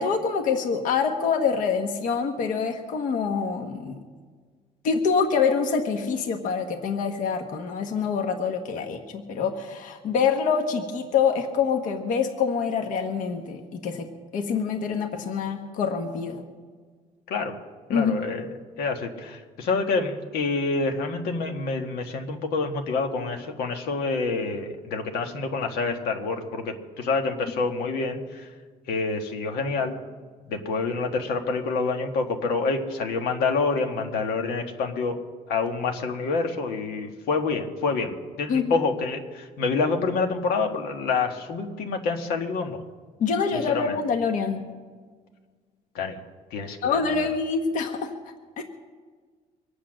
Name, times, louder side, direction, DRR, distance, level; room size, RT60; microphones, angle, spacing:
voice 1, 0.0-3.9 4.8-14.1 14.3-16.4 17.9-18.2 38.5-38.7 43.2-44.6 46.8-48.1 48.6-48.7, left 6 dB, 55° left, 4 dB, 1.3 m, -25 dB
voice 2, 17.9-28.4 28.9-30.0 30.5-35.2 35.5-42.8 43.5-43.9 45.9-46.2 46.5-47.0, left 4 dB, 85° left, 4 dB, 1.6 m, -27 dB
24.0 x 8.5 x 6.4 m, 1.5 s
cardioid pair, 160°, 16 cm